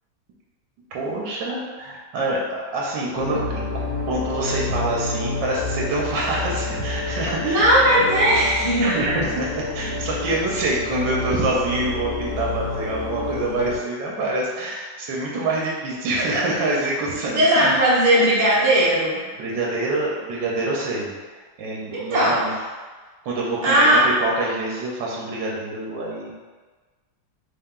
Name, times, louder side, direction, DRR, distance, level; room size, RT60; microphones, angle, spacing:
voice 1, 0.9-3.6 4.0-8.0 8.8-17.8 19.3-22.5 23.2-26.3, right 2 dB, 75° right, -3 dB, 1.3 m, -26 dB
sound 1, 3.1-13.8, left 3 dB, 55° left, 1.0 m, -29 dB
voice 2, 7.4-9.0 17.3-19.2 21.9-22.4 23.6-24.0, right 1 dB, 35° right, -9 dB, 0.6 m, -17 dB
4.2 x 2.2 x 3.7 m, 1.4 s
omnidirectional pair, 2.2 m